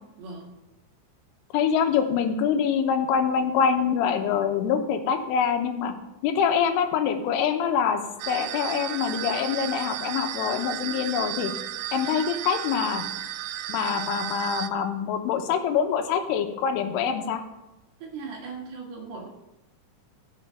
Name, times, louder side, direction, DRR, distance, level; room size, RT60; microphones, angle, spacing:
voice 1, 0.2-0.6 18.0-19.3, right 4 dB, 60° right, -1 dB, 3.1 m, -38 dB
voice 2, 1.5-5.9 6.2-8.0 8.3-11.5 11.9-13.0 13.7-17.4, left 7 dB, 85° left, 6 dB, 3.5 m, -25 dB
sound 1, 8.2-14.7, right 12 dB, 85° right, 2.4 m, -34 dB
15.0 x 5.7 x 5.6 m, 0.96 s
omnidirectional pair, 5.6 m